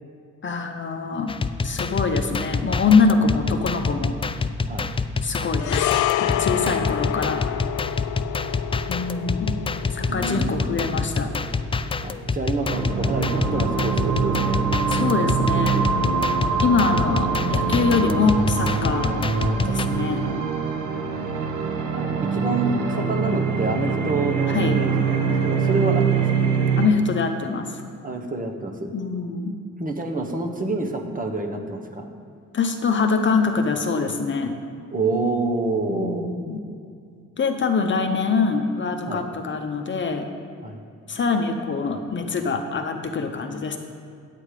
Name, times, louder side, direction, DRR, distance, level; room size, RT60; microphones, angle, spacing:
voice 1, 0.4-1.3 1.6-4.2 5.2-7.4 8.9-9.6 9.9-11.3 14.9-15.9 16.6-19.1 19.6-20.2 24.5-24.8 26.8-27.8 28.9-29.5 32.5-34.6 35.9-36.6 37.4-40.3 41.1-43.8, left 4 dB, 40° left, 5 dB, 0.8 m, -24 dB
sound 1, 1.3-19.9, left 4 dB, 20° left, 0.3 m, -27 dB
sound 2, 5.6-14.1 14.3-14.5, left 13 dB, 80° left, 0.5 m, -29 dB
voice 2, 10.1-10.8 12.0-14.7 18.9-19.0 21.9-26.5 28.0-28.9 29.8-32.1 34.9-36.3 39.0-39.2 40.6-40.8, right 2 dB, 30° right, 3 dB, 1.2 m, -27 dB
sound 3, 12.6-26.9, right 5 dB, 85° right, 1.1 m, -24 dB
8.5 x 8.5 x 4.9 m, 2.4 s
cardioid pair, 90°, 30 cm